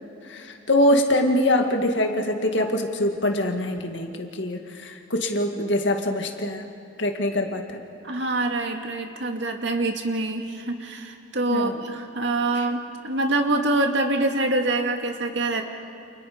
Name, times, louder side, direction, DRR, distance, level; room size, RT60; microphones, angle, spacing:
voice 1, 0.3-6.7 7.0-7.8 11.5-11.8 12.5-12.7, left 1 dB, 70° left, 4 dB, 2.1 m, -24 dB
voice 2, 8.0-15.6, right 2 dB, 65° right, 4 dB, 2.2 m, -25 dB
30.0 x 28.5 x 5.2 m, 2.8 s
head